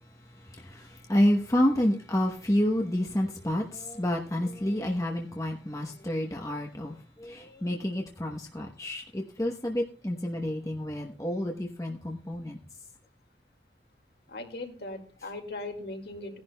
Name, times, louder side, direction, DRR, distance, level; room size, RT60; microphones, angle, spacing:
voice 1, 1.1-12.6, left 1 dB, 20° left, 1 dB, 0.9 m, -29 dB
voice 2, 14.3-16.4, left 2 dB, 60° left, 4 dB, 2.0 m, -39 dB
18.0 x 10.5 x 2.2 m, 0.42 s
head